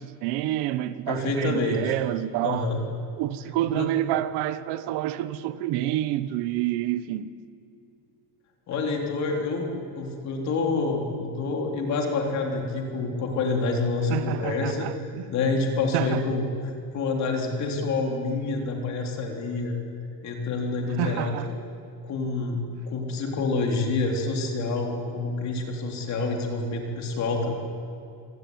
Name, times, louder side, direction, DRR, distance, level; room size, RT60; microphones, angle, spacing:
voice 1, 0.0-2.7 3.2-7.3 14.1-15.2 15.9-16.4 21.0-21.5, right 13 dB, 85° right, 1.4 m, -28 dB
voice 2, 1.1-2.0 2.4-2.8 3.7-3.9 8.7-14.9 15.3-19.8 20.2-21.4 22.0-27.6, left 3 dB, 45° left, 3.7 m, -27 dB
26.5 x 18.0 x 9.6 m
cardioid pair, 170°, 40 cm